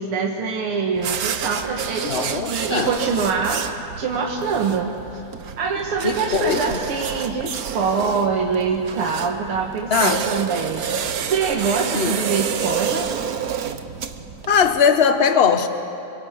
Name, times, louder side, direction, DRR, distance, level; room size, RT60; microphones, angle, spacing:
voice 1, 0.0-3.7 4.0-5.2 5.6-13.2, right 5 dB, 80° right, 0 dB, 2.4 m, -24 dB
sound 1, 0.9-14.8, right 8 dB, 55° right, 1.2 m, -29 dB
voice 2, 2.0-2.9 6.0-6.8 9.9-10.2 11.9-12.2 14.5-15.7, left 6 dB, 35° left, 8 dB, 1.3 m, -19 dB
26.5 x 23.5 x 8.1 m, 2.9 s
omnidirectional pair, 2.4 m